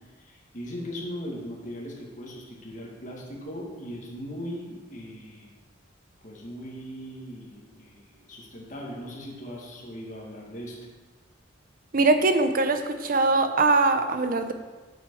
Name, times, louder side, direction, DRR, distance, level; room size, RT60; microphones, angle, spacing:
voice 1, 0.2-5.6 6.2-10.8, equal, 40° left, -2 dB, 1.9 m, -39 dB
voice 2, 11.9-14.5, right 3 dB, 50° right, 8 dB, 0.7 m, -22 dB
7.6 x 7.4 x 4.7 m, 1.3 s
head